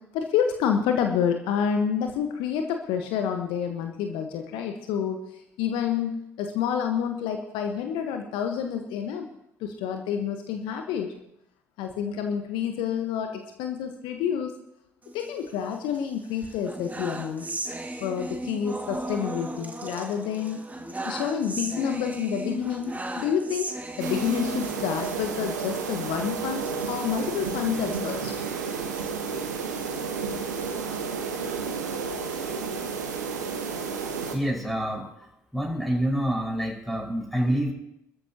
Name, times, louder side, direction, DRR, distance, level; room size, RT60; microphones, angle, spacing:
voice 1, 0.1-5.2 5.6-9.3 9.6-11.1 11.8-14.5 15.1-17.4 18.0-20.6 21.0-28.3, left 8 dB, 65° left, 5 dB, 1.3 m, -28 dB
sound 1, 15.0-16.0 16.4-25.2 25.5-25.7 25.9-26.1 26.6-29.1 29.6-31.0, right 1 dB, 15° right, 2.0 m, -36 dB
sound 2, 24.0-34.4, right 5 dB, 80° right, 1.3 m, -31 dB
voice 2, 34.3-35.3 35.5-37.7, equal, ahead, -1 dB, 5.3 m, -27 dB
24.5 x 14.0 x 2.9 m, 0.81 s
figure-of-eight pair, 50°, 9 cm